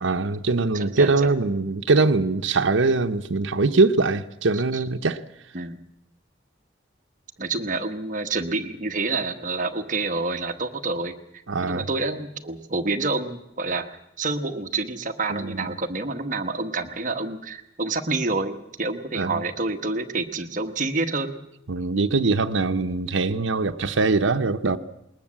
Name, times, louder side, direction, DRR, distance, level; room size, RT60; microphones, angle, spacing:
voice 1, 0.0-5.2 11.5-11.9 15.3-15.7 19.1-19.4 21.7-24.8, right 3 dB, 85° right, 0.8 m, -22 dB
voice 2, 0.7-1.3 4.5-4.8 5.5-5.8 7.4-11.1 11.6-13.9 14.2-21.3, right 3 dB, 40° right, 1.3 m, -28 dB
20.5 x 20.0 x 7.5 m
head